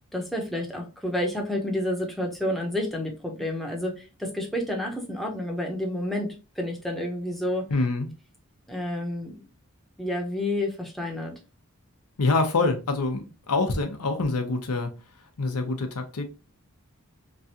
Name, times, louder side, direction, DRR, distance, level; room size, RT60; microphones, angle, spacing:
voice 1, 0.1-7.7 8.7-9.5 10.0-11.3, left 1 dB, ahead, 0.6 m, -30 dB
voice 2, 7.7-8.1 12.2-14.9 15.4-16.3, left 3 dB, 90° left, 0.7 m, -25 dB
3.1 x 2.4 x 2.7 m
head